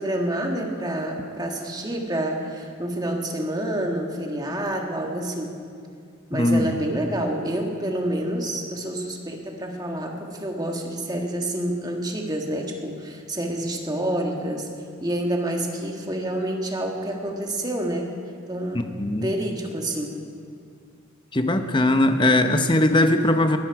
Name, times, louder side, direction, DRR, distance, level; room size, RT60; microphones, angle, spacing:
voice 1, 0.0-5.5 6.3-14.7 15.0-18.1 18.5-18.8 19.1-20.2, right 1 dB, 20° right, 1 dB, 1.6 m, -28 dB
voice 2, 6.3-6.7 18.7-19.3 21.3-23.6, left 1 dB, 25° left, 7 dB, 0.8 m, -20 dB
21.0 x 14.0 x 4.8 m, 2.3 s
head